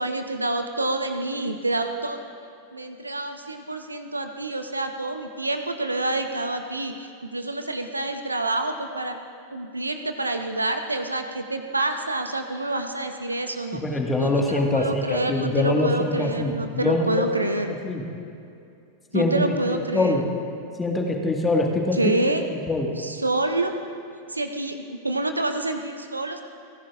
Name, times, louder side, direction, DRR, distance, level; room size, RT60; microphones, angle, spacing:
voice 1, 0.0-2.2 2.7-9.2 9.5-13.8 14.2-17.7 19.1-20.2 21.9-22.4 23.0-23.7 24.3-26.4, right 2 dB, 80° right, 7 dB, 0.7 m, -27 dB
voice 2, 13.8-17.3 17.8-18.0 19.1-20.3 20.8-22.2 22.5-22.9, left 2 dB, 15° left, 1 dB, 1.6 m, -24 dB
29.5 x 11.0 x 2.5 m, 2.5 s
figure-of-eight pair, 90°, 0 cm